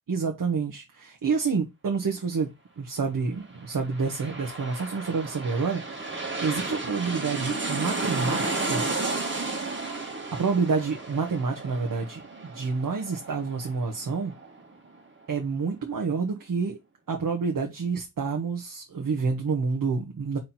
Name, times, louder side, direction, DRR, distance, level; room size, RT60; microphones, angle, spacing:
voice 1, 0.1-2.5 2.8-8.8 10.3-14.3 15.3-16.8 17.1-20.4, right 5 dB, 80° right, 1.4 m, -28 dB
sound 1, 3.6-15.0 15.3-15.4, right 3 dB, 35° right, 2.1 m, -33 dB
4.5 x 3.7 x 5.6 m
cardioid pair, 65°, 33 cm